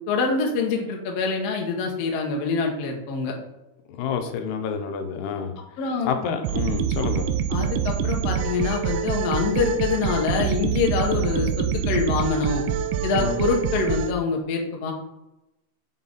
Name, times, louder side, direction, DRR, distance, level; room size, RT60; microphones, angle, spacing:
voice 1, 0.1-3.3 5.8-6.1 7.5-12.6 13.0-14.9, left 4 dB, 65° left, 1 dB, 1.6 m, -25 dB
voice 2, 4.0-5.6 6.1-7.3 13.1-13.4, left 6 dB, 85° left, 6 dB, 2.9 m, -28 dB
sound 1, 6.4-14.1, right 8 dB, 80° right, 2.5 m, -25 dB
7.0 x 5.7 x 4.0 m, 0.91 s
omnidirectional pair, 4.6 m